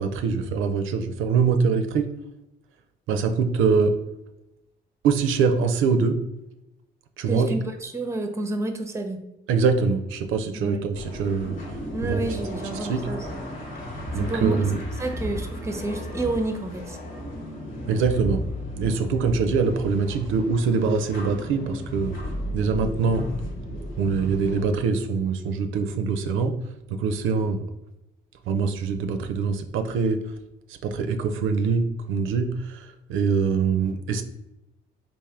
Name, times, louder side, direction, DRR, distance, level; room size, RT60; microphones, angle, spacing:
voice 1, 0.0-2.1 3.1-4.0 5.0-6.2 7.2-7.6 9.5-11.6 12.0-12.3 12.8-13.1 14.1-14.8 17.9-18.4 18.8-22.2 22.5-23.3 24.0-26.6 26.9-27.6 28.5-30.2 30.7-34.2, right 5 dB, 80° right, 7 dB, 0.4 m, -24 dB
voice 2, 7.3-9.2 10.6-10.8 11.9-13.4 14.2-14.6 15.0-17.0, right 2 dB, 15° right, 6 dB, 0.5 m, -29 dB
sound 1, 10.9-24.6, equal, 75° left, 1.4 m, -34 dB
3.3 x 2.5 x 3.6 m, 0.91 s
cardioid pair, 90°, 20 cm